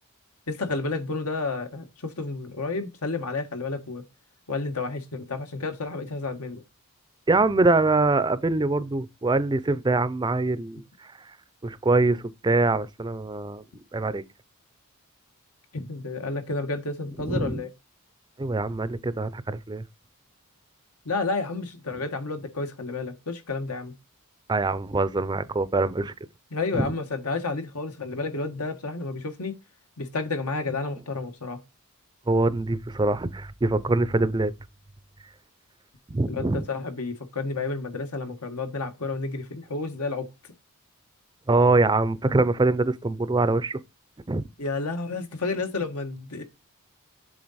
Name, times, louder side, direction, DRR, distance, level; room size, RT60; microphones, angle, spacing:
voice 1, 0.5-4.0 4.5-6.6 15.7-17.7 21.0-23.9 26.5-29.6 30.0-31.6 36.3-40.3 44.6-46.4, left 3 dB, 85° left, 1.4 m, -31 dB
voice 2, 7.3-11.1 11.6-13.6 13.9-14.2 17.3-17.6 18.4-19.8 24.5-26.1 26.7-26.9 32.3-34.5 36.1-36.6 41.5-43.8 44.3-44.4, right 3 dB, 20° right, 0.4 m, -24 dB
7.7 x 3.8 x 4.1 m
head